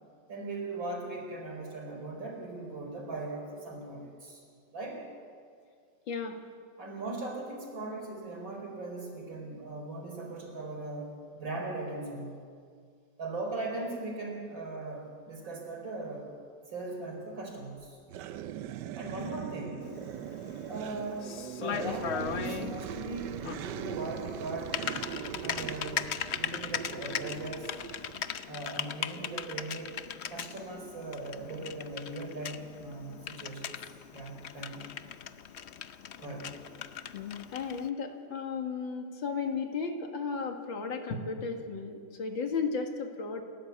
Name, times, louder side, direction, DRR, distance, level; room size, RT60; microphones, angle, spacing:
voice 1, 0.3-4.4 4.7-5.0 6.8-12.4 13.2-16.3 16.7-18.0 19.0-20.0 20.7-24.8 25.2-26.1 26.3-27.7 28.5-30.0 30.3-34.9 36.2-36.6, right 2 dB, 85° right, 1 dB, 5.3 m, -39 dB
voice 2, 6.1-6.4 37.5-43.4, left 5 dB, 85° left, 4 dB, 2.7 m, -34 dB
sound 1, 18.1-28.4, right 10 dB, 70° right, 1.3 m, -40 dB
Typing, 19.8-37.9, left 8 dB, 65° left, 0.6 m, -39 dB
29.0 x 13.5 x 8.3 m, 2.1 s
omnidirectional pair, 2.0 m